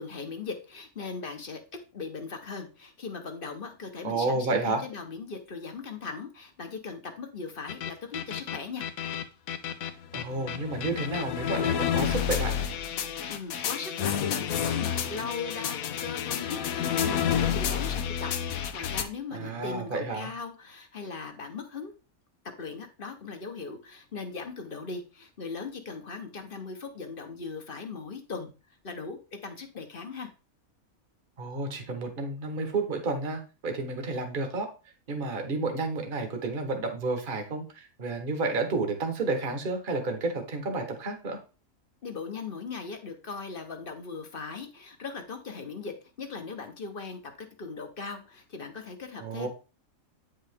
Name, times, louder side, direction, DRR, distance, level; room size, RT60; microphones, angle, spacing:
voice 1, 0.0-1.6 1.9-8.8 13.3-21.9 22.6-28.5 28.8-30.3 42.0-49.5, left 4 dB, 40° left, 6 dB, 1.1 m, -39 dB
voice 2, 4.0-4.8 10.1-12.6 19.3-20.3 31.4-34.7 35.1-41.4 49.2-49.5, right 3 dB, 40° right, 5 dB, 1.4 m, -31 dB
sound 1, 7.7-19.0, left 9 dB, 75° left, 1.2 m, -30 dB
8.7 x 5.6 x 3.5 m, 0.32 s
omnidirectional pair, 1.5 m